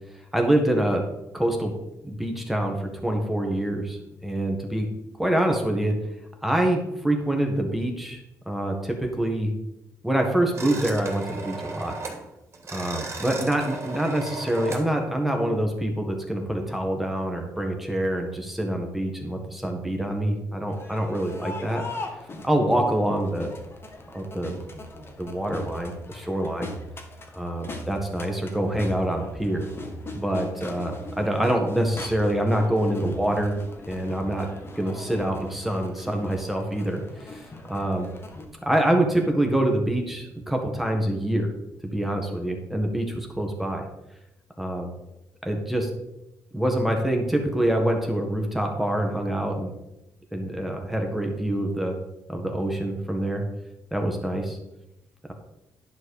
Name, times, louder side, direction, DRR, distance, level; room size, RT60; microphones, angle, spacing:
voice 1, 0.3-1.0 1.3-1.7 2.0-4.9 5.2-5.9 6.4-8.2 8.5-9.5 10.0-12.0 12.7-21.8 22.4-23.5 24.1-24.6 25.2-26.7 27.3-29.7 30.1-33.6 33.9-34.5 34.8-38.1 38.6-41.5 41.9-43.8 44.6-44.9 45.4-45.9 46.5-49.7 50.3-52.0 52.3-53.4 53.9-54.6, right 1 dB, 5° right, 2 dB, 1.7 m, -25 dB
sound 1, 10.6-12.2 12.5-14.9, right 3 dB, 45° right, 2.9 m, -36 dB
Crowd, 20.7-38.4, left 2 dB, 35° left, 1.9 m, -40 dB
11.0 x 4.6 x 6.5 m, 0.91 s
cardioid pair, 80°, 7 cm